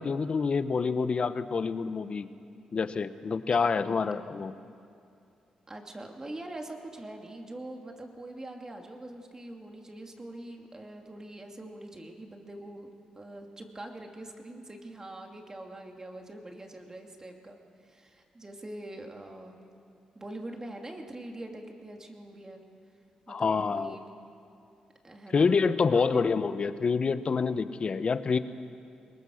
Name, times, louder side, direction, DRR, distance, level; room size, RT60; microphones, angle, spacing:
voice 1, 0.0-2.3 2.7-4.5 23.3-23.9 25.3-28.4, left 5 dB, 45° left, 12 dB, 0.9 m, -27 dB
voice 2, 5.7-17.6 17.8-19.6 20.1-22.6 23.3-24.0 25.0-25.6 25.8-26.3, right 1 dB, 25° right, 2 dB, 2.7 m, -43 dB
22.5 x 20.0 x 6.4 m, 2.5 s
cardioid pair, 75°, 2 cm